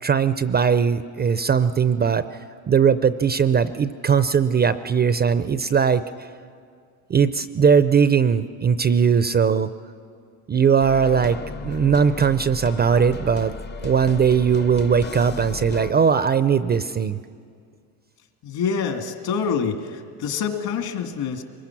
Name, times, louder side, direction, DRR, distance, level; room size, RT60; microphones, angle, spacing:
voice 1, 0.0-2.2 2.7-6.0 7.1-9.7 10.5-11.4 11.6-13.5 13.8-17.2, right 6 dB, 25° right, 13 dB, 0.5 m, -19 dB
sound 1, 10.8-15.9, left 5 dB, 25° left, 0.7 m, -35 dB
voice 2, 18.4-21.4, left 6 dB, 60° left, 5 dB, 2.5 m, -26 dB
24.5 x 21.0 x 6.0 m, 2.2 s
supercardioid pair, 110°, 42 cm